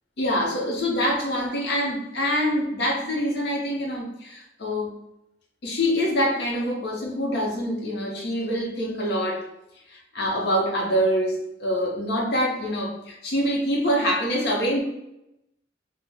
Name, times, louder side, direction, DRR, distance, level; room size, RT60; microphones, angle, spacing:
voice 1, 0.2-4.9 5.6-9.5 9.9-14.8, equal, 65° left, -1 dB, 0.8 m, -25 dB
2.4 x 2.1 x 3.3 m, 0.85 s
head